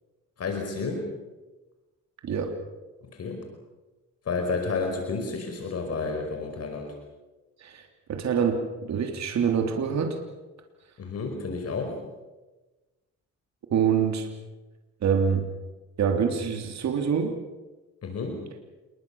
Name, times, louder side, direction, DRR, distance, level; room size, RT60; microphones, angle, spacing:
voice 1, 0.4-1.1 3.0-3.5 4.3-7.0 11.0-12.0 18.0-18.4, left 4 dB, 55° left, 3 dB, 5.2 m, -31 dB
voice 2, 2.2-2.5 7.6-10.2 13.7-14.3 15.0-15.4 16.0-17.4, right 7 dB, 65° right, 4 dB, 3.3 m, -25 dB
27.5 x 22.0 x 7.1 m, 1.1 s
cardioid pair, 90°, 30 cm